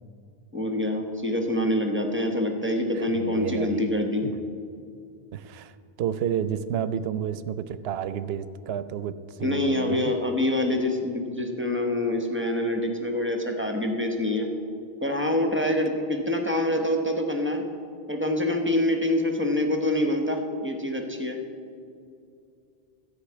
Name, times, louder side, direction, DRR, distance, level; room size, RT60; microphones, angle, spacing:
voice 1, 0.5-4.2 9.4-14.5 15.0-17.6 18.1-21.4, left 1 dB, 10° right, 3 dB, 1.0 m, -26 dB
voice 2, 2.9-3.9 4.2-4.3 5.3-10.1, right 9 dB, 75° right, 14 dB, 0.8 m, -31 dB
12.0 x 5.7 x 8.6 m, 2.4 s
omnidirectional pair, 1.0 m